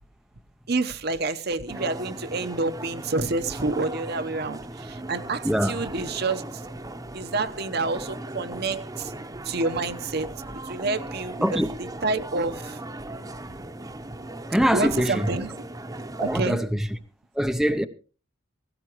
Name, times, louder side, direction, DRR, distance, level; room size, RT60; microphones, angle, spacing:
voice 1, 0.7-6.4 7.1-9.1 9.4-12.8 14.7-15.5 16.2-16.6, right 3 dB, 50° right, 0.9 m, -28 dB
sound 1, 1.7-16.4, right 1 dB, 20° right, 0.9 m, -38 dB
voice 2, 5.4-5.8 11.4-11.7 14.5-15.3 16.2-16.9 17.4-17.9, equal, ahead, 0.6 m, -23 dB
17.0 x 16.5 x 3.0 m
head